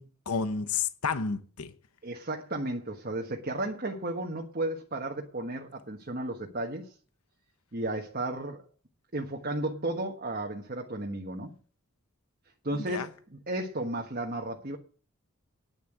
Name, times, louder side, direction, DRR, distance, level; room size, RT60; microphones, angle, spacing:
voice 1, 0.0-1.7 12.7-13.1, left 5 dB, 85° left, 1.0 m, -31 dB
voice 2, 2.0-6.9 7.7-8.6 9.1-11.5 12.6-14.8, right 1 dB, 45° right, 1.3 m, -34 dB
10.0 x 7.2 x 7.9 m
head